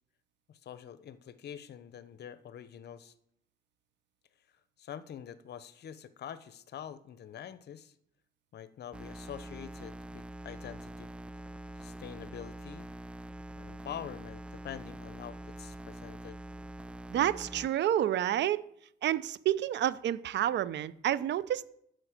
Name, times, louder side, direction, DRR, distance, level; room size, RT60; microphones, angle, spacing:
voice 1, 0.5-3.1 4.8-7.9 8.5-11.1 11.8-12.9 13.6-16.4, left 9 dB, 55° left, 0.7 m, -45 dB
sound 1, 8.9-17.7, right 1 dB, 5° right, 0.3 m, -45 dB
voice 2, 17.1-18.6 19.0-21.7, right 11 dB, 60° right, 0.5 m, -29 dB
9.0 x 6.4 x 5.0 m
cardioid pair, 90°, 20 cm